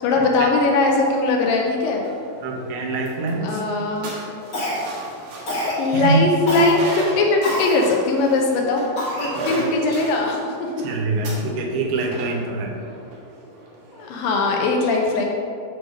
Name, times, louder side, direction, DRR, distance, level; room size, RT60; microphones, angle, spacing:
voice 1, 0.0-2.0 3.4-4.1 5.5-8.9 9.2-10.7 14.0-15.2, left 3 dB, 75° left, 0 dB, 2.2 m, -20 dB
sound 1, 1.1-14.7, right 2 dB, 65° right, 2.7 m, -37 dB
voice 2, 2.4-3.6 5.9-6.2 9.3-9.7 10.8-12.7, right 3 dB, 90° right, 0 dB, 2.9 m, -24 dB
Cough, 4.5-5.0 5.5-5.8 6.5-6.7 7.4-7.8 8.3-8.4 9.0-9.7, equal, 40° left, 1.3 m, -26 dB
7.8 x 3.3 x 6.2 m, 2.5 s
omnidirectional pair, 4.4 m